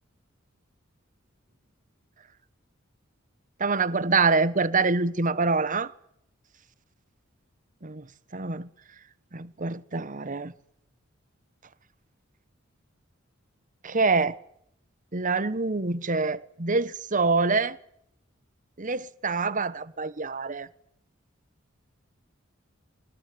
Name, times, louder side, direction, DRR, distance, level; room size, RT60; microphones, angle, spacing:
voice 1, 3.6-5.9 7.8-8.1 8.3-8.7 9.3-10.5 13.8-14.4 15.1-17.8 18.8-20.7, right 4 dB, 40° right, 1.3 m, -25 dB
24.0 x 20.5 x 9.4 m
head